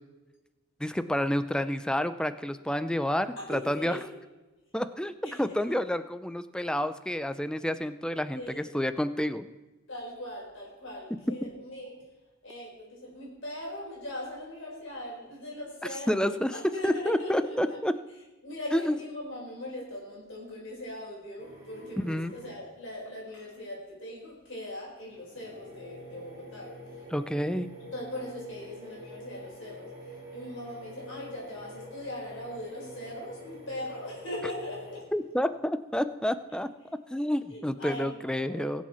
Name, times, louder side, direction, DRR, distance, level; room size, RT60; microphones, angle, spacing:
voice 1, 0.8-4.0 4.7-5.1 5.4-9.5 16.1-16.5 16.8-17.9 18.7-18.9 22.0-22.3 27.1-27.7 35.1-36.7 37.1-38.8, equal, 5° left, 12 dB, 0.4 m, -29 dB
voice 2, 3.4-4.0 5.2-5.4 8.3-8.8 9.9-12.0 12.4-17.8 18.4-26.7 27.9-29.9 30.3-35.0 37.5-38.8, left 1 dB, 60° left, -4 dB, 4.5 m, -40 dB
sound 1, 21.4-22.8 25.0-35.3, equal, 15° right, 5.0 m, -47 dB
22.0 x 7.4 x 4.4 m, 1.1 s
head